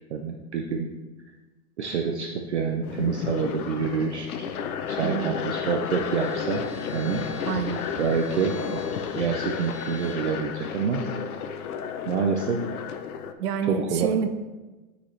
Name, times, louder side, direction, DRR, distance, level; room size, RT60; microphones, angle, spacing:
voice 1, 0.1-0.9 1.8-4.5 4.9-6.7 6.9-7.2 8.0-8.8 9.1-11.1 12.1-12.6 13.6-14.1, right 5 dB, 50° right, 2 dB, 0.4 m, -27 dB
sound 1, 2.8-13.3, left 7 dB, 65° left, 0.6 m, -33 dB
voice 2, 5.0-5.3 7.5-7.8 13.4-14.3, right 7 dB, 75° right, 9 dB, 0.7 m, -27 dB
Bowed string instrument, 5.8-10.3, equal, 25° left, 1.0 m, -44 dB
8.4 x 4.1 x 3.1 m, 1.2 s
supercardioid pair, 180°, 47 cm